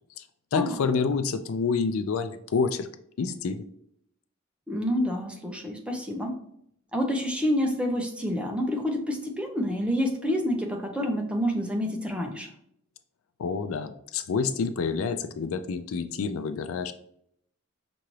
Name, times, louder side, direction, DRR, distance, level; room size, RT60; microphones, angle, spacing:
voice 1, 0.5-2.9 3.2-3.6 13.4-16.9, left 5 dB, 75° left, 10 dB, 0.4 m, -28 dB
voice 2, 4.7-6.4 6.9-12.5, equal, 5° right, 2 dB, 0.6 m, -28 dB
5.6 x 2.6 x 3.1 m, 0.72 s
head